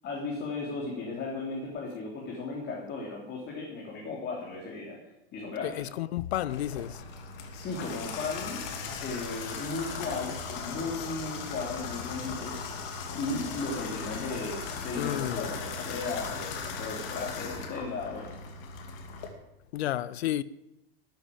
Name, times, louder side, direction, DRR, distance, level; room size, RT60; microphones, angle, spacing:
voice 1, 0.0-5.0 5.3-5.9 7.5-8.6 9.0-18.4, left 3 dB, 35° left, 3.2 m, -36 dB
voice 2, 5.8-7.0 11.0-11.1 15.0-15.5 19.7-20.4, left 13 dB, 75° left, 0.8 m, -31 dB
Water tap faucet / Bathtub (filling or washing), 6.5-19.3, left 5 dB, 60° left, 2.7 m, -38 dB
13.0 x 8.0 x 8.7 m
hypercardioid pair, 125°, 32 cm